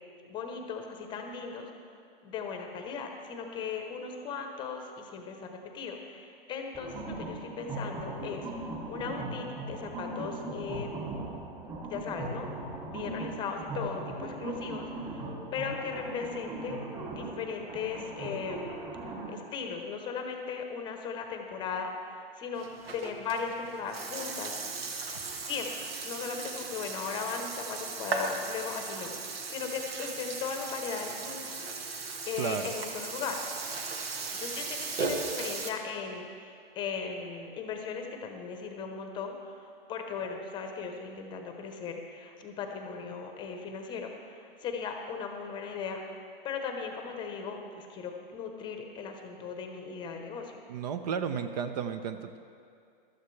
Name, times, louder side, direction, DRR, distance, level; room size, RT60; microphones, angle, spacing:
voice 1, 0.3-1.7 2.2-10.9 11.8-12.5 12.9-16.8 17.1-18.7 19.3-22.7 22.9-24.6 25.4-31.4 31.8-33.4 34.4-46.0 46.4-50.6, left 6 dB, 15° left, 4 dB, 0.8 m, -38 dB
sound 1, 6.7-19.3, right 2 dB, 20° right, 2.3 m, -39 dB
Burping eructation, 22.6-35.7, right 4 dB, 85° right, 1.5 m, -37 dB
voice 2, 32.4-32.7 50.7-52.4, right 7 dB, 45° right, 9 dB, 0.6 m, -33 dB
15.5 x 12.5 x 3.2 m, 2.4 s
hypercardioid pair, 155°, 29 cm